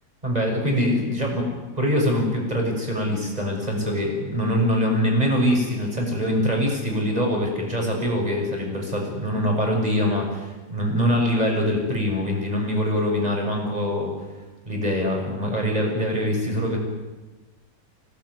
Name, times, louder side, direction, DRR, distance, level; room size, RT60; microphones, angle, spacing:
voice 1, 0.2-1.4 1.8-14.1 14.7-16.8, equal, 25° right, 0 dB, 6.8 m, -23 dB
25.0 x 18.5 x 9.7 m, 1.2 s
omnidirectional pair, 1.7 m